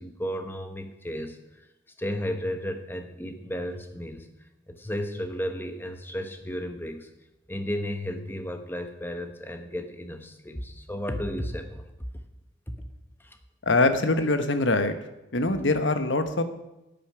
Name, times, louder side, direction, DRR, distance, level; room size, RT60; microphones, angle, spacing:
voice 1, 0.0-1.7 2.0-4.3 4.7-7.1 7.5-11.8 12.7-12.8 13.2-13.4, equal, 10° left, 6 dB, 1.0 m, -33 dB
voice 2, 13.7-14.9 15.3-16.4, left 2 dB, 70° left, 9 dB, 1.1 m, -23 dB
12.0 x 9.2 x 5.9 m, 0.96 s
head